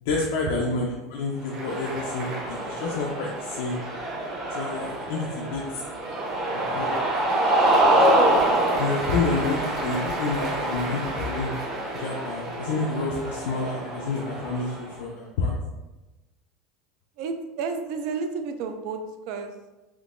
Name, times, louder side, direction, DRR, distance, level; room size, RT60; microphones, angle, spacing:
voice 1, 0.0-3.8 4.5-5.8 6.5-6.9 8.8-11.5 11.9-15.5, left 3 dB, 75° left, -2 dB, 0.5 m, -29 dB
Cheering, 1.4-14.9, right 1 dB, 30° right, 0.8 m, -26 dB
voice 2, 17.2-19.0 19.3-19.5, right 5 dB, 45° right, 7 dB, 0.3 m, -31 dB
3.6 x 2.8 x 2.5 m, 1.1 s
cardioid pair, 180°, 0 cm